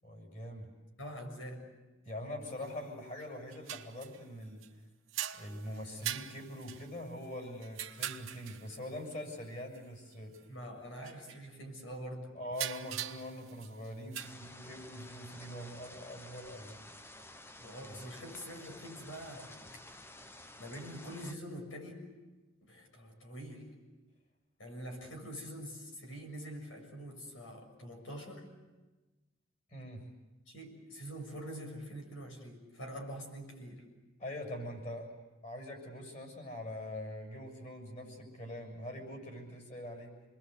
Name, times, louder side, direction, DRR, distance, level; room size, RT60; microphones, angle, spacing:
voice 1, 0.0-0.7 2.0-4.6 5.3-10.3 12.3-16.8 29.7-30.1 34.2-35.1 35.4-40.2, left 1 dB, 35° left, 3 dB, 6.9 m, -43 dB
voice 2, 1.0-1.7 10.5-12.3 17.6-19.7 20.6-22.1 22.6-23.7 24.6-28.5 30.5-33.8, equal, 75° left, 2 dB, 6.7 m, -45 dB
sound 1, 2.6-2.7 3.2-4.7 5.1-8.9 9.7-9.8 10.1-10.4 11.0-11.4 12.5-14.3, right 11 dB, 80° right, 1.2 m, -42 dB
sound 2, 14.2-21.4, left 1 dB, 10° left, 0.8 m, -52 dB
28.0 x 21.5 x 8.3 m, 1.2 s
head